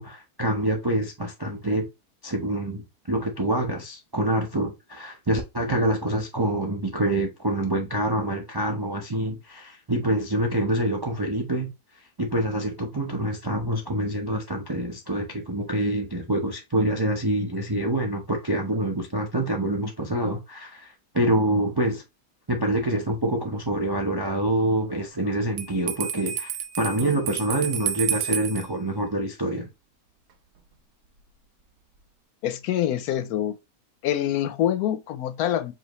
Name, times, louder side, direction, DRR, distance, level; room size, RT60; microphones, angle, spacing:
voice 1, 0.0-1.9 2.2-11.7 12.2-22.0 22.5-29.7, right 1 dB, 40° right, 0.3 m, -26 dB
Bell, 25.6-28.7, right 9 dB, 65° right, 1.0 m, -30 dB
voice 2, 32.4-33.6 34.0-35.7, left 11 dB, 90° left, 1.1 m, -25 dB
5.1 x 2.7 x 2.9 m
omnidirectional pair, 1.6 m